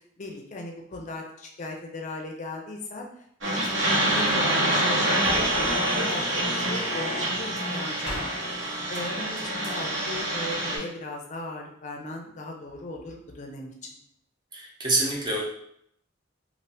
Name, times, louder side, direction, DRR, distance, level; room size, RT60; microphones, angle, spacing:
voice 1, 0.2-3.1 3.4-13.7, left 2 dB, 40° left, 1 dB, 0.5 m, -37 dB
sound 1, 3.4-10.8, right 1 dB, 90° right, 1.1 m, -26 dB
sound 2, 5.2-5.8 8.1-8.3, equal, 5° right, 1.2 m, -35 dB
voice 2, 14.5-15.4, right 2 dB, 25° right, -2 dB, 0.5 m, -26 dB
2.7 x 2.5 x 3.3 m, 0.72 s
head